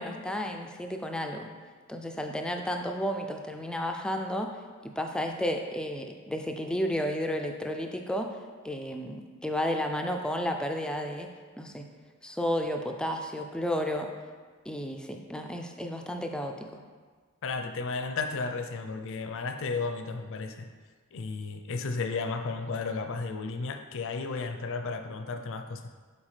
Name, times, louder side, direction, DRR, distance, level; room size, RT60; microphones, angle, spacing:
voice 1, 0.0-1.5 1.9-4.5 4.8-8.3 8.6-11.3 11.6-11.8 12.2-14.1 14.7-16.8, equal, 5° left, 3 dB, 0.3 m, -32 dB
voice 2, 17.4-20.7 21.1-25.8, left 4 dB, 65° left, 7 dB, 0.5 m, -33 dB
7.2 x 4.4 x 3.3 m, 1.5 s
head